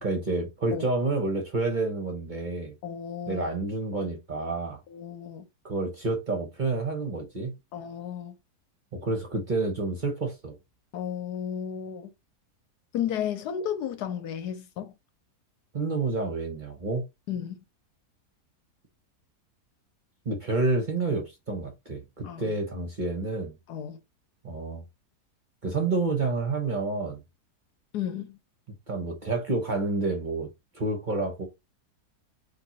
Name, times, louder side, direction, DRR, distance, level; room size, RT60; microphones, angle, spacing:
voice 1, 0.0-2.7 3.3-4.8 5.6-7.5 8.9-10.5 15.7-17.0 20.2-23.5 24.4-24.8 25.6-27.2 28.9-30.5 30.7-31.5, right 3 dB, 40° right, 0.8 m, -29 dB
voice 2, 2.8-3.5 4.9-5.5 7.7-8.4 10.9-12.1 12.9-14.9 17.3-17.6 22.2-22.4 23.7-24.0 27.9-28.4, left 9 dB, 85° left, 1.3 m, -33 dB
4.5 x 2.6 x 4.0 m
omnidirectional pair, 1.7 m